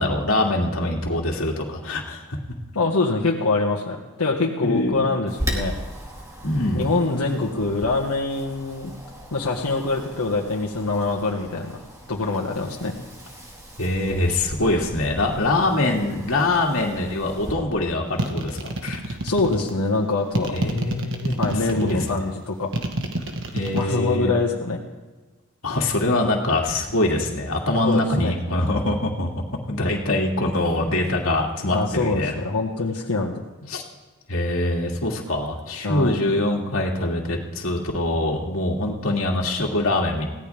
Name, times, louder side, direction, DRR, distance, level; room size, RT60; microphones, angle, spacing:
voice 1, 0.0-2.2 4.6-5.2 6.4-6.9 13.8-19.2 20.5-22.0 23.5-24.3 25.6-29.3 29.7-32.3 33.7-33.8 34.3-40.3, left 2 dB, 70° left, 0 dB, 2.4 m, -24 dB
voice 2, 2.7-5.8 6.7-8.9 9.3-11.7 12.1-12.9 19.2-20.6 21.4-22.7 23.7-24.8 27.8-28.3 31.7-33.7 35.8-36.1, left 3 dB, 90° left, -2 dB, 1.7 m, -24 dB
Wind, 5.3-17.5, equal, 15° right, 2.1 m, -37 dB
sound 1, 18.2-19.7 20.3-22.1 22.7-23.8, right 1 dB, 55° right, 1.6 m, -27 dB
22.5 x 17.0 x 3.6 m, 1.3 s
head